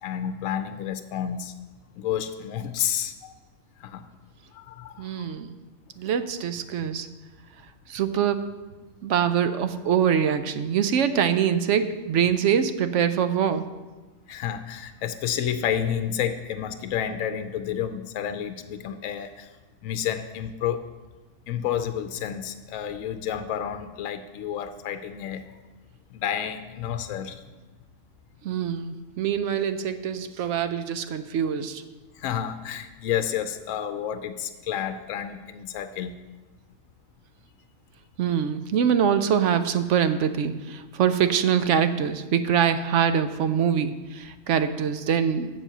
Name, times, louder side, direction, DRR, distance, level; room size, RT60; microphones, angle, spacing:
voice 1, 0.0-1.5 2.0-3.3 3.8-4.1 4.5-5.3 14.3-19.5 19.8-20.9 21.5-25.4 26.1-27.4 32.2-36.2, left 9 dB, 75° left, 9 dB, 0.9 m, -30 dB
voice 2, 5.0-5.6 6.0-7.1 7.9-8.4 9.0-13.7 28.4-31.8 38.2-45.5, right 8 dB, 70° right, 11 dB, 0.8 m, -24 dB
7.6 x 7.3 x 6.6 m, 1.2 s
omnidirectional pair, 1.4 m